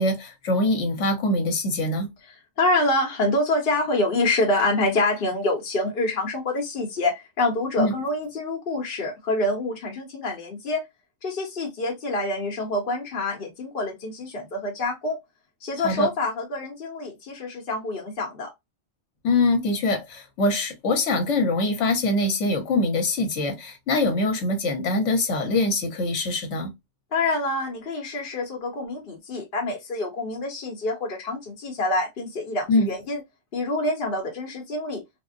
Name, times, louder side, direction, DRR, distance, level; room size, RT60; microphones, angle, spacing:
voice 1, 0.0-2.1 7.8-7.9 15.8-16.1 19.2-26.7 32.7-32.9, left 2 dB, 80° left, 1.2 m, -23 dB
voice 2, 2.6-10.8 11.2-15.2 15.6-18.5 27.1-33.2 33.5-35.0, left 2 dB, 55° left, 1.0 m, -26 dB
3.4 x 2.1 x 2.5 m
omnidirectional pair, 1.2 m